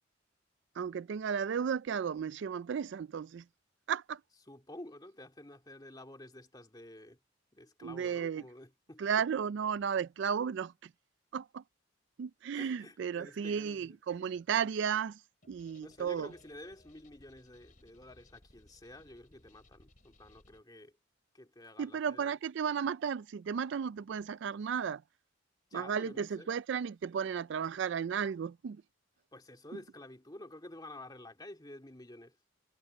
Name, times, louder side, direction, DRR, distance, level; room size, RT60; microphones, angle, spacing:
voice 1, 0.8-3.4 3.9-4.2 7.8-8.4 9.0-10.9 11.3-11.6 12.2-15.2 15.5-16.3 21.8-25.0 25.7-28.8, right 7 dB, 60° right, 0.3 m, -34 dB
voice 2, 4.5-7.2 7.5-9.0 12.5-14.0 15.8-20.9 21.3-22.3 25.7-26.5 29.3-32.4, left 1 dB, 20° left, 2.5 m, -50 dB
sound 1, 15.4-20.6, left 2 dB, 40° left, 2.8 m, -63 dB
head